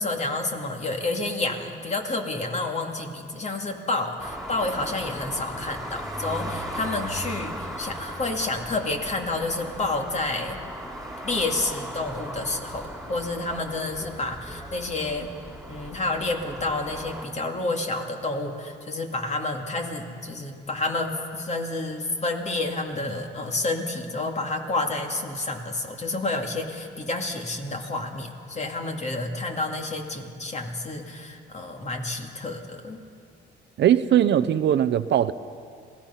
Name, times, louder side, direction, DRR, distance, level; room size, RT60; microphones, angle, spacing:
voice 1, 0.0-10.6 11.2-15.3 15.7-33.0, left 2 dB, 35° left, 3 dB, 2.4 m, -29 dB
sound 1, 4.2-17.3, equal, ahead, 3.6 m, -37 dB
voice 2, 33.8-35.3, right 10 dB, 65° right, 12 dB, 0.7 m, -20 dB
27.0 x 17.5 x 5.7 m, 2.3 s
cardioid pair, 90°, 20 cm